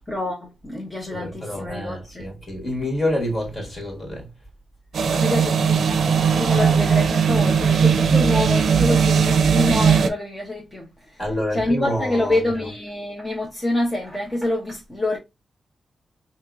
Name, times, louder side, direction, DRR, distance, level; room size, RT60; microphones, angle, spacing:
voice 1, 0.1-2.3 5.1-11.2 11.5-15.2, left 1 dB, 15° left, 0.7 m, -26 dB
voice 2, 1.1-4.3 11.2-12.4, left 1 dB, 30° left, 1.6 m, -27 dB
sound 1, 4.9-10.1, right 6 dB, 75° right, 0.5 m, -18 dB
4.2 x 2.8 x 2.3 m
wide cardioid pair, 155°, 0 cm